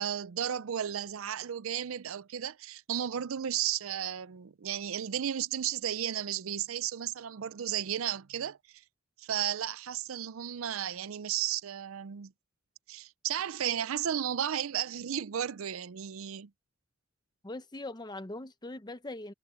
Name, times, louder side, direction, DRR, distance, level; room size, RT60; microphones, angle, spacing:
voice 1, 0.0-8.6 9.2-12.3 12.9-16.5, right 10 dB, 70° right, 0.5 m, -34 dB
voice 2, 17.4-19.3, left 2 dB, 20° left, 0.9 m, -41 dB
head